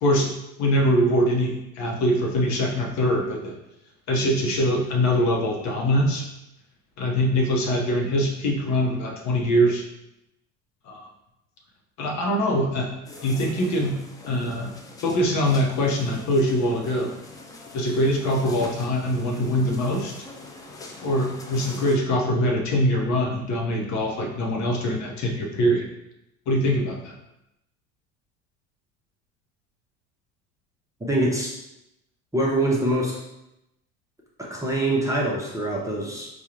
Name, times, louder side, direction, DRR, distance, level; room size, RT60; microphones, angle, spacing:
voice 1, 0.0-3.6 4.1-6.3 7.0-9.8 10.8-11.1 12.0-12.9 13.2-14.7 15.0-17.1 17.7-20.1 21.0-25.9 26.5-27.2, equal, 45° left, 0 dB, 0.9 m, -23 dB
sound 1, 13.0-22.0, left 2 dB, 10° left, 0.3 m, -43 dB
voice 2, 31.1-31.5 32.3-33.2 34.4-36.3, right 1 dB, 10° right, -4 dB, 0.7 m, -24 dB
4.6 x 2.3 x 2.9 m, 0.87 s
figure-of-eight pair, 70°, 40 cm